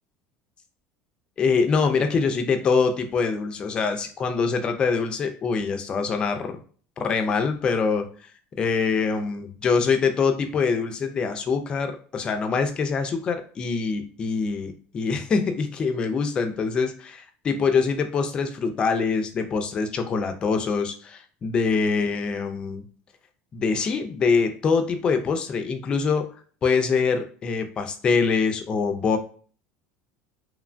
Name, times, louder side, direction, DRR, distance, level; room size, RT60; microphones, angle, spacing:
voice 1, 1.4-6.6 7.0-8.1 8.6-22.8 23.5-26.3 26.6-29.2, left 5 dB, 20° left, 6 dB, 0.3 m, -24 dB
3.0 x 2.1 x 2.5 m, 0.42 s
cardioid pair, 165°, 4 cm